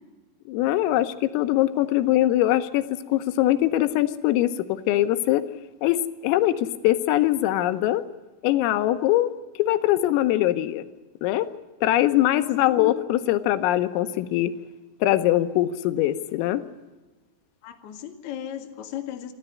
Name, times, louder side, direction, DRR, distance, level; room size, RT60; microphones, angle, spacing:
voice 1, 0.5-5.5 5.8-8.1 8.4-9.3 9.6-10.9 11.2-11.5 11.8-14.5 15.0-16.6, left 14 dB, 85° left, 10 dB, 3.5 m, -22 dB
voice 2, 12.6-12.9 17.6-19.3, left 11 dB, 55° left, 3 dB, 2.2 m, -35 dB
26.5 x 13.5 x 9.3 m, 1.2 s
omnidirectional pair, 5.9 m